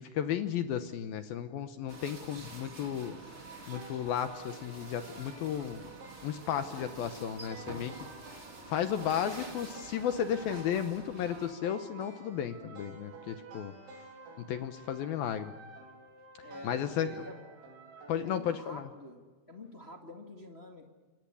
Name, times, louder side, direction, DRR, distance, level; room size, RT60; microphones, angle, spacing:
voice 1, 0.0-3.2 3.7-5.9 6.2-8.1 8.7-13.7 14.4-15.5 16.6-17.2 18.1-18.9, left 9 dB, 70° left, 9 dB, 2.4 m, -34 dB
sound 1, 1.9-11.5, right 3 dB, 50° right, 0.7 m, -48 dB
sound 2, 3.0-18.3, right 3 dB, 85° right, 6.7 m, -51 dB
voice 2, 16.4-17.4 18.2-19.2 19.5-20.9, left 1 dB, 35° left, 2 dB, 0.9 m, -48 dB
28.5 x 25.0 x 7.1 m, 1.4 s
omnidirectional pair, 5.2 m